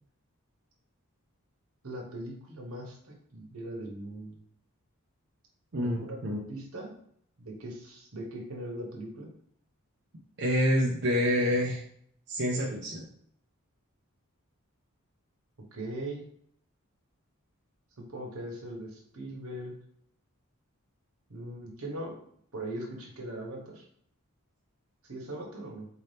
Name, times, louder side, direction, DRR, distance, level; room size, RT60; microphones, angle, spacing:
voice 1, 1.8-4.4 5.8-6.2 6.5-6.9 7.4-9.3 15.7-16.2 18.0-19.8 21.3-22.2 22.5-23.8 25.0-25.9, right 1 dB, 75° right, 0 dB, 1.2 m, -40 dB
voice 2, 5.7-6.4 10.4-11.8 12.3-13.1, equal, 55° right, -3 dB, 0.6 m, -27 dB
4.5 x 2.8 x 3.4 m, 0.65 s
head